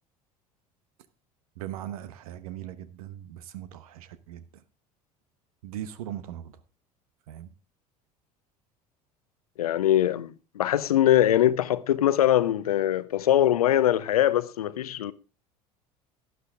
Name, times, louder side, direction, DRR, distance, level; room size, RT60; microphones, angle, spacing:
voice 1, 1.6-4.6 5.6-6.6 7.3-7.5, right 11 dB, 65° right, 1.1 m, -39 dB
voice 2, 9.6-15.1, left 12 dB, 75° left, 0.7 m, -22 dB
12.0 x 11.0 x 3.6 m
figure-of-eight pair, 65°, 20 cm